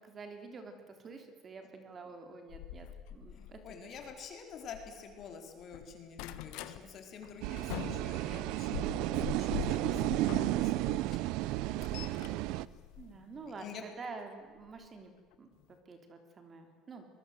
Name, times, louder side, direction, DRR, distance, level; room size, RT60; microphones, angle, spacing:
voice 1, 0.0-3.6 13.0-15.1 15.4-15.5 15.9-17.1, right 4 dB, 30° right, 6 dB, 3.4 m, -48 dB
sound 1, 2.5-5.3 5.6-6.8 7.2-11.0 11.4-13.6 14.7-14.9 15.3-15.4 15.6-15.7, left 10 dB, 85° left, 1.5 m, -43 dB
voice 2, 3.3-11.2 12.0-12.4 13.5-13.8, left 6 dB, 45° left, 4 dB, 4.5 m, -49 dB
sound 2, 7.4-12.7, right 17 dB, 75° right, 0.7 m, -33 dB
26.5 x 21.5 x 8.0 m, 1.5 s
cardioid pair, 150°, 0 cm